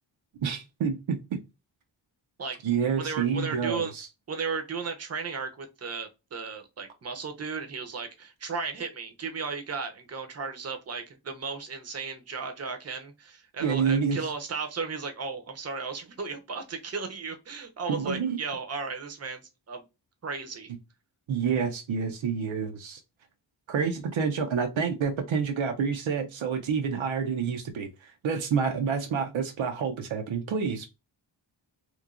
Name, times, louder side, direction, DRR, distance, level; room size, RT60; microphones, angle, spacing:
voice 1, 0.4-1.4 2.6-4.1 13.6-14.3 17.9-18.4 21.3-23.0 23.7-30.9, right 6 dB, 90° right, 0.6 m, -28 dB
voice 2, 3.0-3.9 4.3-19.8 20.2-20.7, right 5 dB, 35° right, 0.5 m, -35 dB
3.0 x 2.1 x 2.4 m
wide cardioid pair, 120°, 46 cm